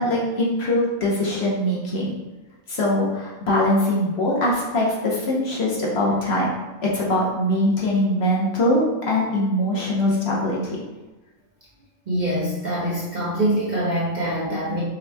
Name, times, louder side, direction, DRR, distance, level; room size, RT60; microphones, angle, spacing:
voice 1, 0.0-2.1 2.7-6.5 6.8-10.8, left 1 dB, 55° left, -4 dB, 1.0 m, -22 dB
voice 2, 12.1-14.8, right 1 dB, 45° right, -7 dB, 0.7 m, -24 dB
5.9 x 3.0 x 2.2 m, 1.1 s
omnidirectional pair, 1.4 m